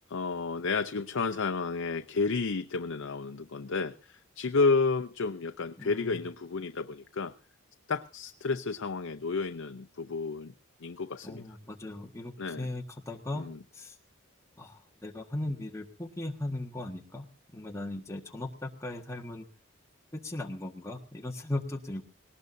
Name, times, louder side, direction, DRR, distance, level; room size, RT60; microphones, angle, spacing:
voice 1, 0.1-7.3 7.9-10.5 10.8-11.4 12.4-12.7 13.3-13.6, left 4 dB, 75° left, 8 dB, 0.6 m, -31 dB
voice 2, 5.8-6.2 11.2-13.4 13.7-13.9 14.6-17.3 17.5-19.4 20.1-22.0, left 1 dB, 15° left, 1 dB, 1.5 m, -37 dB
20.0 x 18.5 x 2.7 m, 0.36 s
head